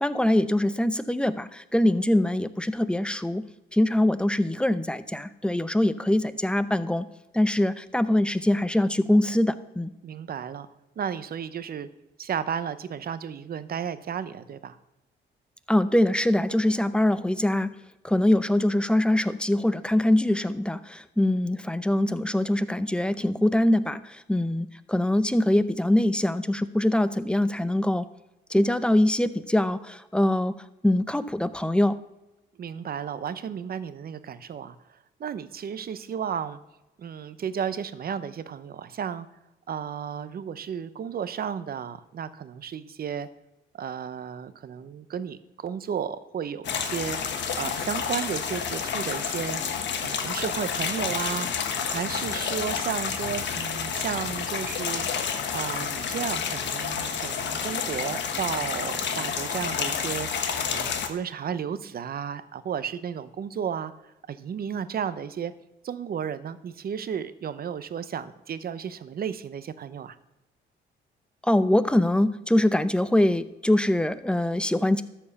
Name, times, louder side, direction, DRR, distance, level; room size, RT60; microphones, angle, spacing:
voice 1, 0.0-3.4 3.7-7.1 7.3-9.9 15.7-17.7 18.0-28.1 28.5-30.5 30.8-32.0 71.4-75.0, left 1 dB, 5° left, 13 dB, 0.6 m, -23 dB
voice 2, 10.0-10.7 11.0-11.9 12.2-14.8 32.6-36.6 37.0-39.3 39.7-43.3 43.7-47.3 47.6-49.6 50.0-51.5 51.9-55.1 55.5-60.3 60.7-63.9 64.3-65.5 65.8-70.2, right 8 dB, 50° right, 13 dB, 0.8 m, -33 dB
sound 1, 46.6-61.1, left 7 dB, 65° left, 1.3 m, -30 dB
12.5 x 4.5 x 7.1 m, 0.97 s
cardioid pair, 90°, 20 cm